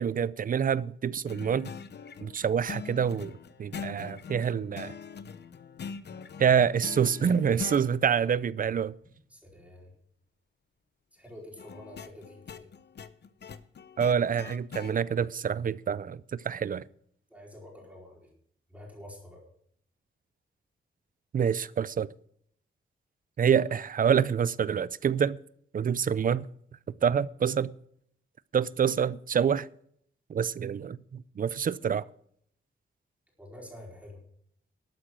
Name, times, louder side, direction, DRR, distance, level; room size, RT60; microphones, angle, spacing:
voice 1, 0.0-1.7 2.2-3.3 3.6-4.9 6.4-8.9 14.0-16.8 21.3-22.1 23.4-25.4 25.7-26.5 27.0-27.7 28.5-29.7 30.3-32.0, right 7 dB, 40° right, 0.4 m, -27 dB
sound 1, 1.3-7.8 11.6-15.0, left 6 dB, 55° left, 0.7 m, -42 dB
voice 2, 9.3-9.9 11.1-12.7 17.3-18.3 18.7-19.4 33.4-34.2, left 1 dB, 5° right, 4.5 m, -48 dB
12.0 x 8.8 x 6.3 m
wide cardioid pair, 145°, 21 cm